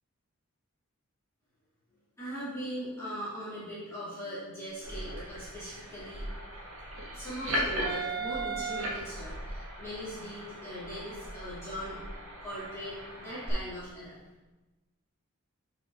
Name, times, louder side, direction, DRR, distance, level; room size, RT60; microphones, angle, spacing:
voice 1, 2.2-6.3 7.1-12.0 12.4-14.2, equal, 15° left, -12 dB, 2.6 m, -40 dB
sound 1, 4.8-13.5, right 2 dB, 65° right, 1.8 m, -37 dB
11.0 x 4.9 x 2.7 m, 1.1 s
head